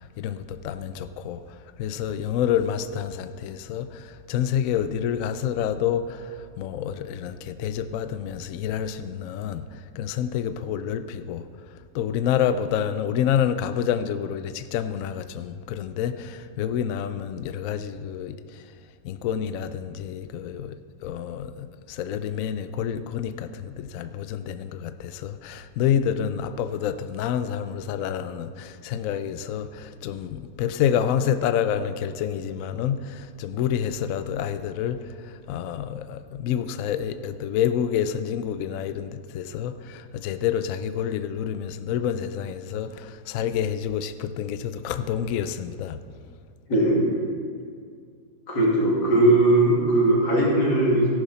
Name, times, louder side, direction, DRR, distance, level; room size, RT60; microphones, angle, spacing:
voice 1, 0.2-1.4 1.8-9.7 10.0-11.4 11.9-18.6 19.0-20.8 21.0-35.0 35.3-46.0, left 9 dB, 70° left, 0.8 m, -28 dB
voice 2, 46.7-47.2 48.5-51.1, right 1 dB, 85° left, 3.2 m, -19 dB
14.0 x 11.5 x 4.2 m
omnidirectional pair, 1.7 m